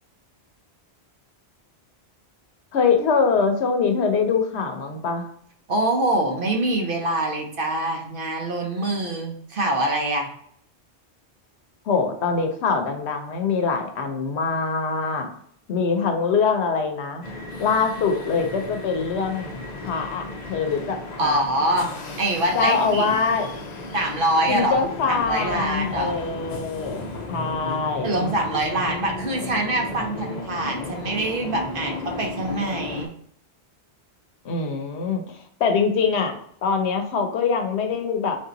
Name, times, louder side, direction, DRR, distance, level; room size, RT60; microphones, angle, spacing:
voice 1, 2.7-5.3 11.8-15.3 15.7-17.2 17.6-19.5 19.8-21.4 22.5-23.5 24.5-28.3 34.4-36.3 36.6-38.4, left 5 dB, 80° left, 5 dB, 0.9 m, -23 dB
voice 2, 5.7-10.3 21.2-23.2 23.9-26.2 28.0-33.1, right 1 dB, 60° right, 1 dB, 0.9 m, -25 dB
sound 1, 17.2-33.1, left 2 dB, 50° left, 0.6 m, -35 dB
3.4 x 2.7 x 3.8 m, 0.63 s
omnidirectional pair, 1.1 m